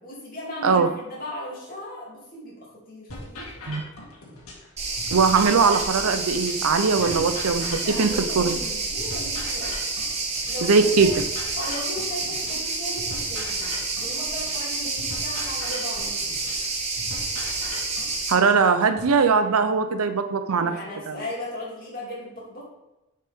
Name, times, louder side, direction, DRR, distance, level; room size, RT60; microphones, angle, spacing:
voice 1, 0.0-3.5 7.0-7.3 7.8-9.8 10.5-11.1 11.6-16.2 20.6-22.6, left 1 dB, 40° left, -6 dB, 2.7 m, -36 dB
sound 1, 3.1-4.7 5.0-8.7 9.0-12.7 13.0-16.7 17.0-19.1, left 1 dB, 85° left, 2.1 m, -40 dB
sound 2, 4.8-18.3, right 3 dB, 30° right, 1.0 m, -29 dB
voice 2, 5.1-8.6 10.6-11.1 18.3-20.8 21.1-21.2, right 5 dB, 85° right, 10 dB, 0.6 m, -20 dB
7.2 x 5.5 x 3.6 m, 0.99 s
head